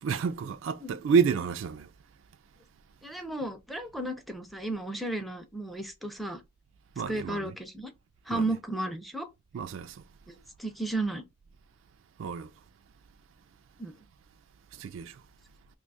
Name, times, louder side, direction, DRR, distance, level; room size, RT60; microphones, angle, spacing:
voice 1, 0.0-1.9 7.0-7.5 8.3-8.4 9.5-10.0 12.2-12.5 14.7-15.2, right 6 dB, 65° right, 0.3 m, -29 dB
voice 2, 3.0-6.4 7.1-7.9 8.3-9.3 10.3-11.2 13.8-13.9, right 2 dB, ahead, 0.4 m, -34 dB
2.7 x 2.3 x 4.0 m
head